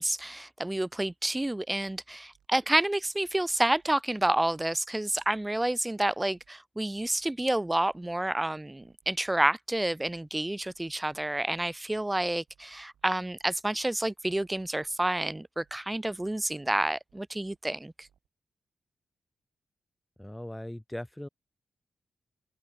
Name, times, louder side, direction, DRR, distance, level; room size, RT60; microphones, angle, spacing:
voice 1, 0.0-17.9, right 1 dB, 15° right, 1.0 m, -29 dB
sound 1, 1.9-2.8 3.2-4.7 5.1-6.5 6.9-8.3 8.8-10.2 10.6-12.0 12.5-13.9 14.3-15.7 16.2-17.6 18.0-18.3, right 9 dB, 85° right, 7.9 m, -68 dB
voice 2, 20.2-21.3, left 1 dB, 10° left, 0.7 m, -39 dB
open air
cardioid pair, 60°, 0 cm